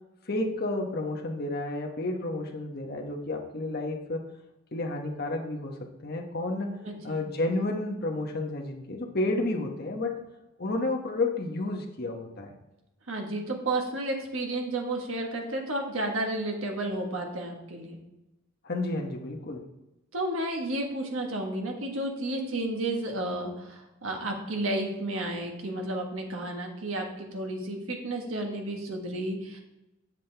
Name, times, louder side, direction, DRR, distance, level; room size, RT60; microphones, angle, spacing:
voice 1, 0.2-4.2 4.7-6.8 7.0-10.1 10.6-12.5 18.6-19.6, left 2 dB, 50° left, 2 dB, 1.0 m, -31 dB
voice 2, 6.8-7.2 13.1-18.0 20.1-29.6, right 1 dB, 75° right, 2 dB, 1.4 m, -32 dB
7.5 x 7.4 x 3.4 m, 0.97 s
head